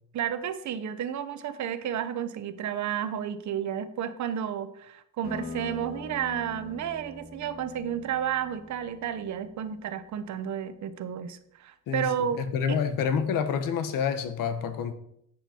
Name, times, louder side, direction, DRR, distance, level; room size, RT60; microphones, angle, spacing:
voice 1, 0.1-12.4 12.7-12.8, right 9 dB, 60° right, 1.0 m, -32 dB
sound 1, 5.2-10.4, left 3 dB, 30° left, 2.3 m, -43 dB
voice 2, 11.9-14.9, left 7 dB, 80° left, 1.3 m, -28 dB
10.5 x 8.9 x 4.5 m
cardioid pair, 140°, 33 cm